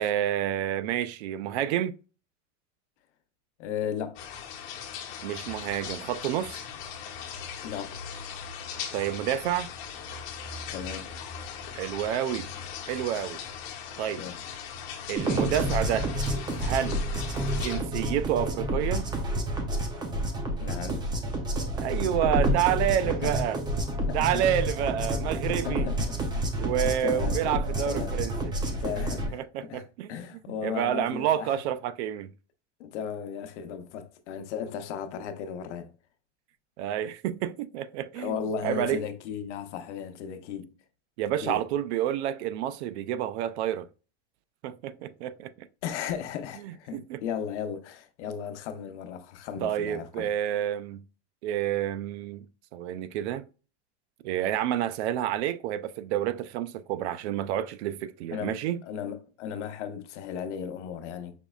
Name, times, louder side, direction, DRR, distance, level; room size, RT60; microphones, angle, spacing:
voice 1, 0.0-2.0 5.2-6.6 8.9-9.7 11.7-12.5 12.9-13.4 14.0-14.2 15.1-16.1 16.6-17.0 17.6-19.1 21.8-23.6 24.1-25.9 26.6-28.6 29.3-30.1 30.6-32.3 36.8-39.0 41.2-43.9 44.6-45.7 46.6-47.2 49.6-51.0 51.4-52.5 52.7-53.4 54.2-58.8, right 11 dB, 70° right, 0.5 m, -29 dB
voice 2, 3.6-4.2 7.6-8.0 10.7-11.1 14.1-14.4 20.6-21.1 23.0-23.3 24.1-24.5 25.5-28.2 28.6-31.5 32.8-35.9 38.2-40.7 41.4-41.6 45.8-50.3 58.3-58.6 58.8-61.3, left 7 dB, 85° left, 0.8 m, -36 dB
sound 1, 4.2-17.8, left 7 dB, 50° left, 1.0 m, -39 dB
sound 2, 15.2-29.3, right 1 dB, 10° right, 0.5 m, -29 dB
5.2 x 3.1 x 2.3 m
supercardioid pair, 155°, 34 cm